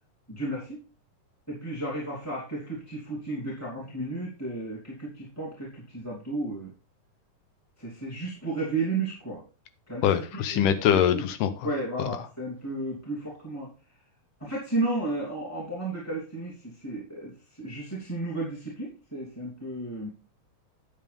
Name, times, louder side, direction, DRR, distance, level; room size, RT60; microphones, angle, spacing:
voice 1, 0.3-0.8 1.5-6.7 7.8-9.4 9.9-10.1 10.5-11.3 11.6-13.7 14.4-20.1, right 2 dB, 5° left, -5 dB, 2.5 m, -33 dB
voice 2, 10.0-11.7 12.0-12.2, left 9 dB, 80° left, 11 dB, 2.4 m, -24 dB
9.8 x 7.4 x 3.5 m, 0.32 s
omnidirectional pair, 3.8 m